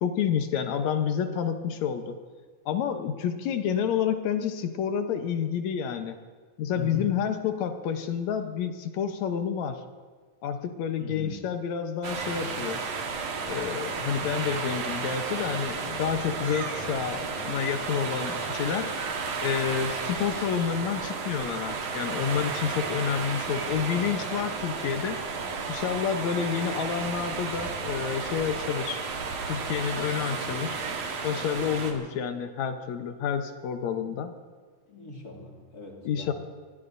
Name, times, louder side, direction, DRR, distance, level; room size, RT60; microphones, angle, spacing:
voice 1, 0.0-2.2 2.7-6.2 6.6-9.8 10.4-12.8 13.5-19.1 19.4-25.3 25.7-29.0 29.5-30.8 31.2-34.3 36.1-36.3, left 8 dB, 70° left, 7 dB, 2.2 m, -29 dB
voice 2, 6.7-7.1 11.0-11.4 34.9-36.3, left 3 dB, 30° left, -2 dB, 2.8 m, -39 dB
sound 1, 12.0-31.9, right 4 dB, 60° right, 2.5 m, -33 dB
25.0 x 20.0 x 2.7 m, 1.5 s
omnidirectional pair, 3.4 m